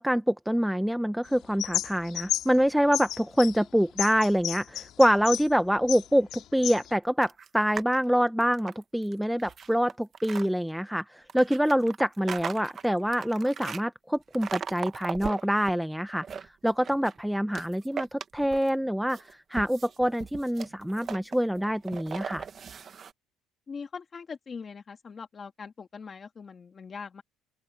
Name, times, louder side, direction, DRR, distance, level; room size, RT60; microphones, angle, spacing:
voice 1, 0.0-16.2 16.6-22.5, equal, ahead, 0.5 m, -26 dB
sound 1, 1.3-2.6 2.9-5.5 5.8-6.9, left 12 dB, 55° left, 4.1 m, -32 dB
sound 2, 7.2-8.0 8.4-10.5 11.3-13.8 14.3-15.7 16.1-17.2 17.5-18.8 19.1-23.1, right 7 dB, 30° right, 0.9 m, -39 dB
voice 2, 23.7-27.2, left 5 dB, 25° left, 1.9 m, -41 dB
open air
cardioid pair, 155°, 0 cm